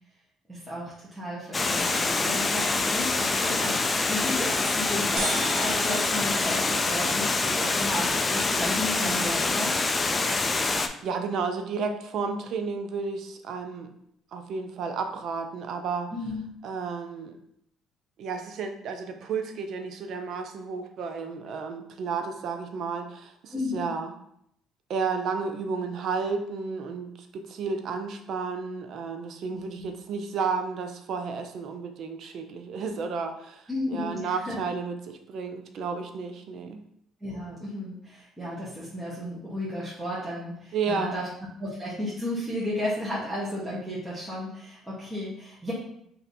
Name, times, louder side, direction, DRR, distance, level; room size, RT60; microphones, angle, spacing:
voice 1, 0.5-9.8 16.1-16.5 23.5-24.0 29.5-29.9 33.7-34.6 37.2-41.3 41.6-45.7, left 1 dB, 10° right, -8 dB, 1.1 m, -33 dB
Water, 1.5-10.9, left 3 dB, 25° left, 0.4 m, -26 dB
sound 1, 5.2-8.7, right 1 dB, 80° right, 1.2 m, -37 dB
voice 2, 11.0-13.9 14.3-16.1 16.6-17.4 18.2-24.1 24.9-36.8 40.7-41.2, right 5 dB, 65° right, 6 dB, 0.5 m, -32 dB
3.2 x 2.7 x 4.1 m, 0.72 s
cardioid pair, 95°, 0 cm